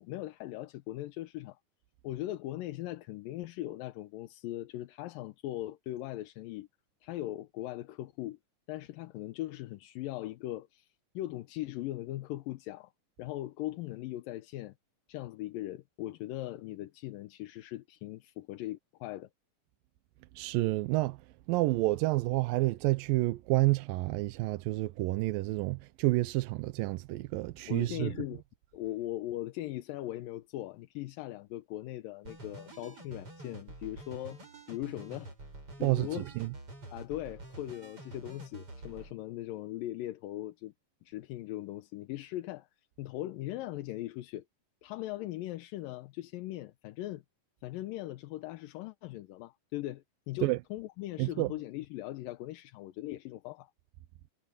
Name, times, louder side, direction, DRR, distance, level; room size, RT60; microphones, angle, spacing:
voice 1, 0.0-1.6 2.0-6.7 7.0-8.4 8.7-10.9 11.1-12.9 13.2-14.7 15.1-19.3 27.7-28.4 28.7-34.4 34.7-35.3 35.8-36.3 36.9-40.7 41.0-42.7 43.0-44.4 44.8-47.2 47.6-53.7, left 15 dB, 85° left, 2.5 m, -39 dB
voice 2, 20.4-21.2 21.5-28.1 35.8-36.5 50.4-50.6 51.2-51.5, right 19 dB, 90° right, 2.4 m, -29 dB
sound 1, 32.2-39.1, right 2 dB, 40° right, 8.6 m, -48 dB
omnidirectional pair, 3.9 m